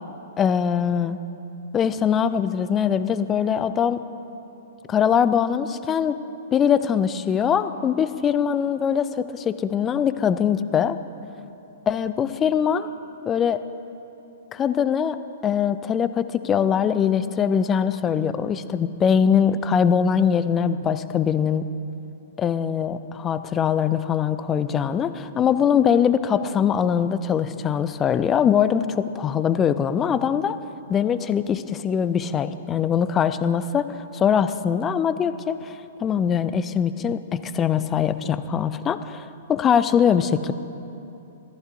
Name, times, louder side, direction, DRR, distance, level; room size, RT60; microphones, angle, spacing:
voice 1, 0.4-1.2 1.7-4.0 4.9-6.2 6.5-11.0 11.9-12.9 13.3-13.6 14.5-15.2 15.4-21.7 22.4-30.6 30.9-40.5, left 8 dB, 20° left, 13 dB, 0.3 m, -22 dB
14.0 x 12.5 x 2.6 m, 2.8 s
figure-of-eight pair, 110°, 0 cm